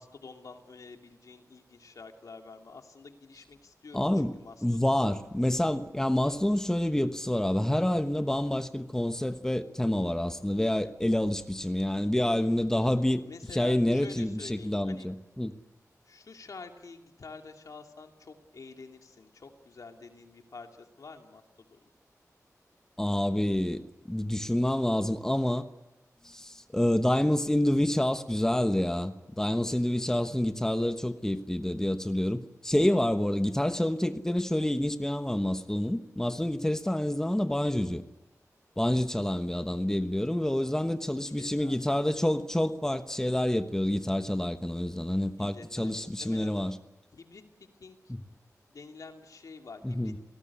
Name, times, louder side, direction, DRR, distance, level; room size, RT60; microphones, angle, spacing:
voice 1, 0.0-5.1 13.2-15.1 16.1-21.4 21.7-21.8 40.3-40.8 41.2-41.8 45.4-46.5 47.1-47.4 47.8-48.1 48.7-50.1, left 4 dB, 75° left, 2.7 m, -48 dB
voice 2, 3.9-4.3 4.6-13.2 13.5-15.5 23.0-25.7 26.2-38.0 38.8-46.8 48.1-48.2 49.8-50.1, left 1 dB, 10° left, 1.1 m, -28 dB
28.0 x 18.5 x 8.6 m
wide cardioid pair, 105°, 6 cm